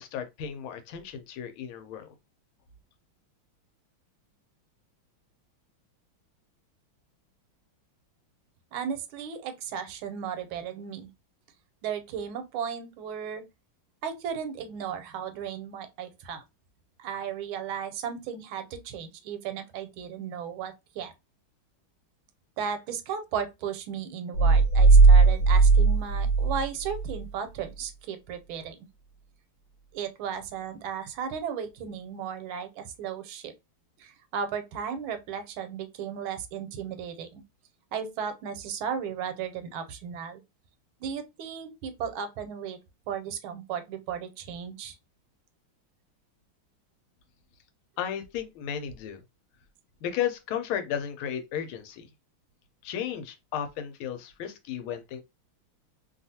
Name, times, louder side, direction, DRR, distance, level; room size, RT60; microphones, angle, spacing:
voice 1, 0.0-2.1 48.0-49.2 50.0-52.1 52.8-55.2, left 9 dB, 85° left, 1.5 m, -34 dB
voice 2, 8.7-11.1 11.8-13.4 14.0-16.4 17.0-21.1 22.6-28.8 29.9-33.5 34.0-37.4 37.9-40.4 41.0-42.8 43.1-44.9, right 7 dB, 80° right, 1.4 m, -35 dB
sound 1, 24.3-27.2, right 4 dB, 65° left, 1.4 m, -18 dB
3.2 x 2.4 x 2.7 m
omnidirectional pair, 2.3 m